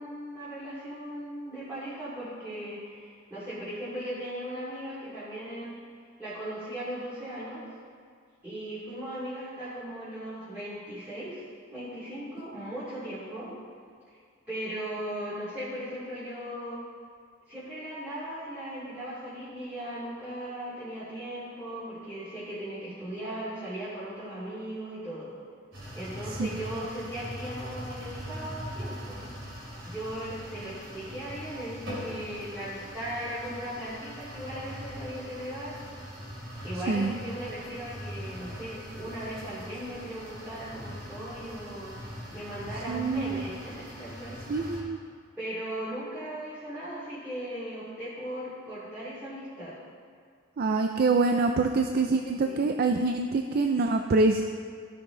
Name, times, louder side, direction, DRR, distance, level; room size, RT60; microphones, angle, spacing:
voice 1, 0.0-5.8 6.2-7.6 8.4-11.4 11.7-13.5 14.5-16.8 17.5-25.3 25.9-29.3 29.8-35.7 36.6-42.0 42.3-44.4 45.4-49.7 52.4-52.6, right 1 dB, 10° right, -14 dB, 2.7 m, -38 dB
sound 1, 25.7-44.8, equal, 65° right, 2.6 m, -41 dB
voice 2, 36.9-37.2 42.9-43.5 44.5-45.0 50.6-54.4, right 3 dB, 45° right, 4 dB, 0.4 m, -25 dB
15.0 x 5.8 x 3.8 m, 2.1 s
head